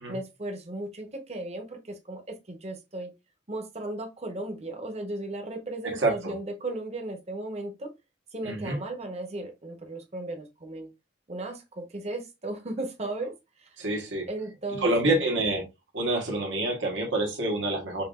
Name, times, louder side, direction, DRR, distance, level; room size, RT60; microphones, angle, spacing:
voice 1, 0.1-3.1 3.5-7.9 8.3-10.9 11.3-13.3 13.6-13.8 14.3-15.2, right 2 dB, 35° right, 0.9 m, -36 dB
voice 2, 6.0-6.3 8.4-8.8 13.8-14.3 14.8-15.6 15.9-18.0, right 2 dB, 85° right, 1.3 m, -27 dB
5.6 x 2.5 x 2.4 m
head